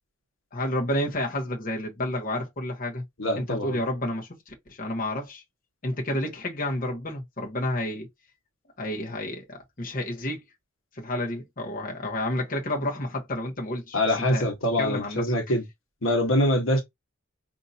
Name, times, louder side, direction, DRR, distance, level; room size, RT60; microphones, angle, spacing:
voice 1, 0.5-3.0 3.3-5.4 5.8-8.1 8.8-10.4 10.9-14.0 14.3-14.5 14.8-15.2, left 1 dB, 40° left, 1.1 m, -30 dB
voice 2, 3.2-3.8 13.9-15.6 16.0-16.8, left 1 dB, 75° left, 1.3 m, -24 dB
5.2 x 2.8 x 2.7 m
head